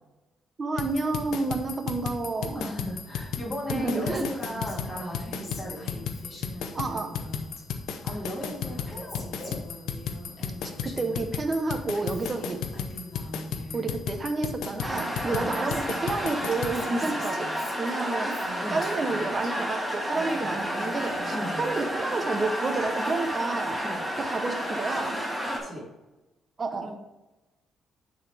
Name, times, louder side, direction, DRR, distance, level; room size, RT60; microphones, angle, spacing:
voice 1, 0.6-2.6 3.7-4.3 6.7-7.2 10.6-12.6 13.7-18.4 18.7-23.9 24.2-25.3 26.6-26.9, right 3 dB, 35° right, 7 dB, 0.9 m, -30 dB
sound 1, 0.8-16.8, left 7 dB, 85° left, 0.7 m, -34 dB
voice 2, 2.5-6.0 8.0-9.6 12.4-12.5 15.2-15.6 16.9-17.1 18.6-18.8 21.3-21.6 23.8-24.1 25.5-25.9 26.8-26.9, equal, 25° left, -5 dB, 2.4 m, -36 dB
Female speech woman speaking, 4.0-7.6 7.9-11.2 11.5-13.9 14.5-14.6 14.8-19.5 19.9-21.9, equal, 45° left, 2.4 m, -43 dB
sound 2, 14.8-25.6, equal, 5° left, 1.8 m, -31 dB
9.1 x 4.1 x 3.5 m, 1.1 s
cardioid pair, 90°, 0 cm